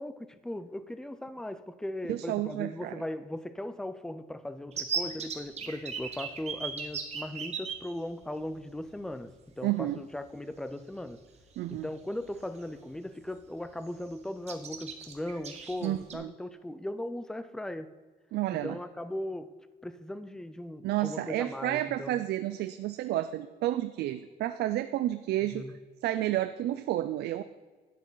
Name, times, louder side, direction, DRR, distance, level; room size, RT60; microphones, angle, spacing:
voice 1, 0.0-11.2 11.7-17.9 18.6-19.5 19.8-22.2 25.5-25.7, left 1 dB, 5° left, 13 dB, 0.4 m, -38 dB
voice 2, 2.1-2.9 9.6-10.0 11.6-11.9 15.8-16.3 18.3-18.8 20.8-25.6 26.0-27.4, right 14 dB, 80° right, 10 dB, 0.4 m, -31 dB
sound 1, 4.7-7.7 8.7-8.8 9.1-9.3 10.9-11.1 11.5-11.8 12.2-12.9 13.2-13.4 13.6-14.1 14.5-16.1, right 6 dB, 40° right, 1.2 m, -36 dB
11.5 x 8.4 x 3.9 m, 1.4 s
cardioid pair, 155°, 17 cm